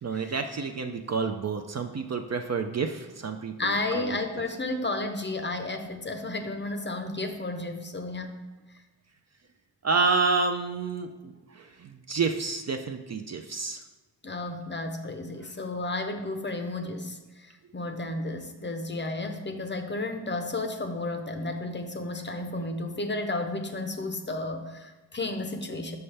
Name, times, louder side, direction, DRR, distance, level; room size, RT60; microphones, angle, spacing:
voice 1, 0.0-4.2 9.8-13.8, right 4 dB, 40° right, 5 dB, 0.4 m, -29 dB
voice 2, 3.6-8.4 14.2-26.0, left 2 dB, 25° left, 6 dB, 0.6 m, -32 dB
5.6 x 5.4 x 3.3 m, 1.2 s
wide cardioid pair, 85°, 43 cm